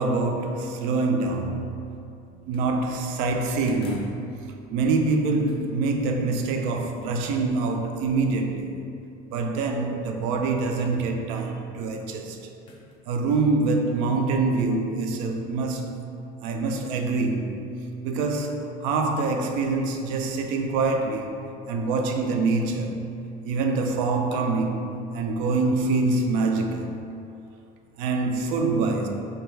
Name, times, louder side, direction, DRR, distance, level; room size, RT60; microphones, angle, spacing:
voice 1, 0.0-1.9 2.5-4.2 4.7-8.8 9.3-12.4 13.1-15.9 16.4-17.6 18.0-21.4 21.7-23.0 23.4-26.9 28.0-29.1, right 3 dB, 70° right, 0.4 m, -25 dB
sound 1, 2.5-2.8 3.7-4.2 5.5-5.7 10.8-11.0 12.7-13.0, left 1 dB, 30° left, 0.4 m, -39 dB
3.3 x 2.3 x 3.2 m
supercardioid pair, 105°, 19 cm